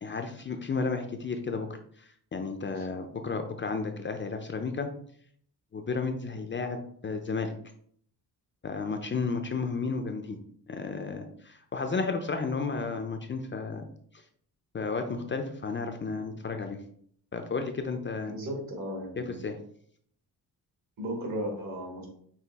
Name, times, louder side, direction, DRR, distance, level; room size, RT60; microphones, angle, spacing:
voice 1, 0.0-4.9 5.7-7.5 8.6-10.4 10.7-13.9 14.7-16.8 17.3-18.3 19.2-19.6, left 4 dB, 30° left, 6 dB, 0.4 m, -33 dB
voice 2, 18.3-19.3 21.0-22.1, equal, 60° right, 0 dB, 1.7 m, -35 dB
5.7 x 2.4 x 3.4 m, 0.63 s
cardioid pair, 110°, 38 cm